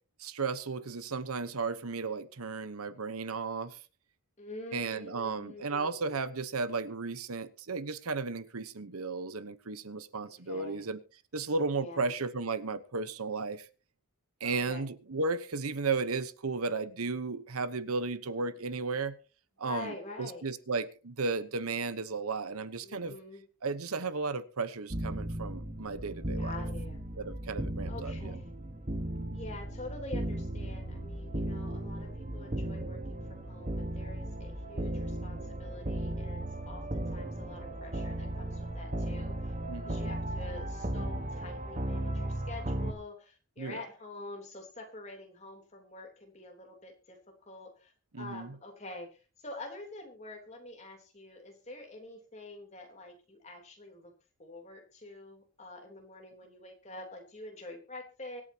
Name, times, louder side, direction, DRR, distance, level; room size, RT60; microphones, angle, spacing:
voice 1, 0.2-3.8 4.7-11.0 11.3-13.7 14.4-19.2 19.6-23.1 23.6-26.5 27.2-28.3 29.1-29.5 39.7-40.1 43.6-43.8 48.1-48.5, right 4 dB, 85° right, 1.0 m, -34 dB
voice 2, 4.4-6.1 10.2-10.9 11.7-12.1 14.4-14.9 19.6-20.5 22.8-23.4 26.4-27.0 27.9-28.5 29.3-39.5 39.9-54.1 54.4-58.4, left 2 dB, 30° left, 3.4 m, -46 dB
sound 1, 24.9-42.9, right 1 dB, 35° right, 1.3 m, -36 dB
24.5 x 8.9 x 2.9 m
head